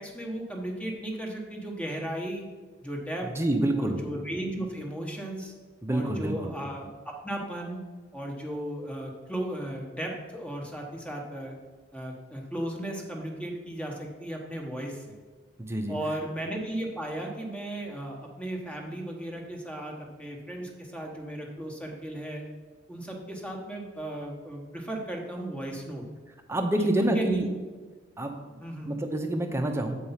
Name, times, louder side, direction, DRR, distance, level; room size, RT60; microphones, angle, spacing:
voice 1, 0.0-2.4 2.8-3.3 3.8-5.5 5.9-7.8 8.1-11.5 11.9-15.1 15.9-22.4 22.9-26.0 26.8-27.5 28.6-29.0, right 1 dB, 5° left, 0 dB, 1.1 m, -35 dB
voice 2, 3.2-4.0 5.8-6.5 15.6-16.0 26.5-27.5 28.2-28.3 28.8-29.9, right 1 dB, 15° right, 4 dB, 0.8 m, -27 dB
7.9 x 4.6 x 5.6 m, 1.4 s
head